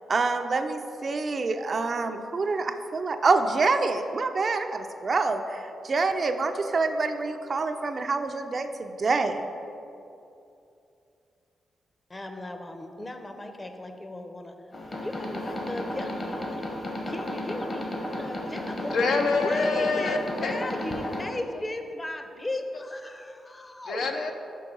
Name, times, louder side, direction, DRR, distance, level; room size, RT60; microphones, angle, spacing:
voice 1, 0.1-9.5, right 3 dB, 50° right, 7 dB, 0.4 m, -26 dB
voice 2, 12.1-14.5 14.9-16.6 17.1-17.9 18.1-19.1 19.4-24.0, left 1 dB, 25° left, 6 dB, 0.7 m, -36 dB
sound 1, 14.7-21.2, left 1 dB, 45° left, 1.1 m, -33 dB
voice 3, 18.9-20.2 20.4-20.6 23.8-24.3, left 4 dB, 75° left, 3 dB, 0.6 m, -25 dB
5.3 x 4.7 x 5.2 m, 2.7 s
supercardioid pair, 55°, 0 cm